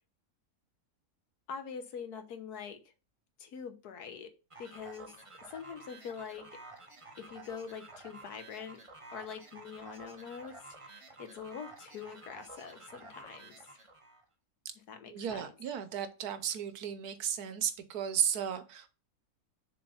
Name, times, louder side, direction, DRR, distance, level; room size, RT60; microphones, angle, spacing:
voice 1, 1.5-2.8 3.4-4.3 4.6-5.1 5.4-6.5 7.2-8.8 9.1-13.6 14.9-15.5, left 6 dB, 90° left, 8 dB, 1.6 m, -44 dB
sound 1, 4.5-14.2, right 3 dB, 25° right, 1.0 m, -51 dB
voice 2, 15.1-18.9, right 9 dB, 80° right, 11 dB, 1.3 m, -34 dB
6.5 x 3.8 x 5.5 m, 0.32 s
omnidirectional pair, 1.6 m